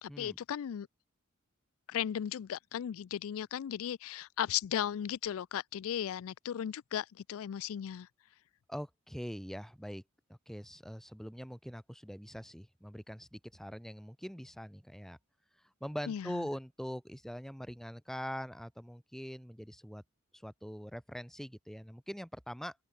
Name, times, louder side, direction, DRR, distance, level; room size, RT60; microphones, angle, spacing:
voice 1, 0.0-0.9 1.9-8.1 16.1-16.3, left 9 dB, 70° left, 0.3 m, -36 dB
voice 2, 8.7-10.0 10.3-15.2 15.8-20.0 20.3-22.8, equal, ahead, 3.0 m, -43 dB
head